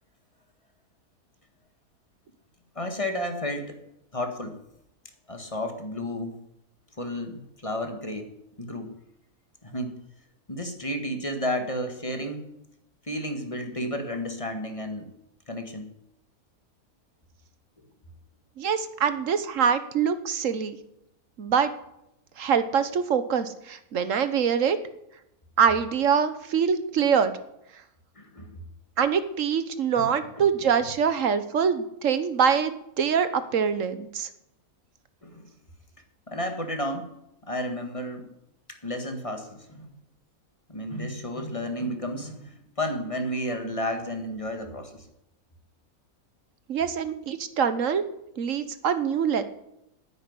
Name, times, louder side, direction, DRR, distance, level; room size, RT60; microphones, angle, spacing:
voice 1, 2.8-3.8 4.1-4.6 5.3-6.3 7.0-8.3 8.6-8.9 9.6-9.9 10.5-12.5 13.1-15.1 15.5-15.9 28.2-28.6 30.0-30.4 35.2-35.4 36.3-37.1 37.5-38.3 38.8-39.9 40.7-45.1, left 1 dB, 20° left, 5 dB, 1.7 m, -32 dB
voice 2, 18.6-20.8 21.4-21.7 22.4-24.8 25.6-27.3 29.0-34.3 46.7-48.0 48.4-49.4, right 7 dB, 60° right, 12 dB, 1.3 m, -24 dB
10.0 x 9.1 x 9.6 m, 0.83 s
omnidirectional pair, 1.6 m